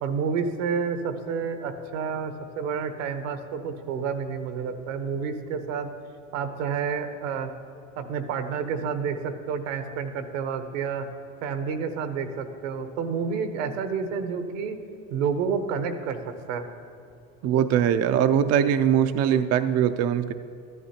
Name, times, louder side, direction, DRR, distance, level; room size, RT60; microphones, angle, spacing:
voice 1, 0.0-5.9 6.3-7.5 8.0-11.1 11.4-14.8 15.1-16.7, right 6 dB, 80° right, 8 dB, 1.0 m, -29 dB
voice 2, 17.4-20.3, right 9 dB, 45° right, 9 dB, 0.4 m, -21 dB
13.5 x 11.0 x 2.8 m, 2.5 s
hypercardioid pair, 90°, 39 cm